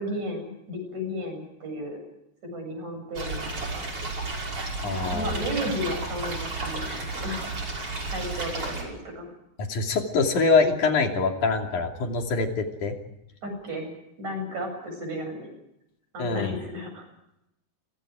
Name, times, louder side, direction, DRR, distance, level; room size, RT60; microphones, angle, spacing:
voice 1, 0.0-2.0 2.4-3.9 4.8-7.5 8.1-9.3 13.4-13.9 14.2-15.5 16.1-17.1, equal, 70° right, 4 dB, 9.6 m, -34 dB
sound 1, 3.2-8.8, right 3 dB, 50° right, 6.7 m, -32 dB
voice 2, 4.8-5.4 9.7-12.9 16.2-16.5, left 4 dB, 85° left, 3 dB, 4.4 m, -24 dB
30.0 x 25.0 x 5.0 m, 0.84 s
omnidirectional pair, 3.4 m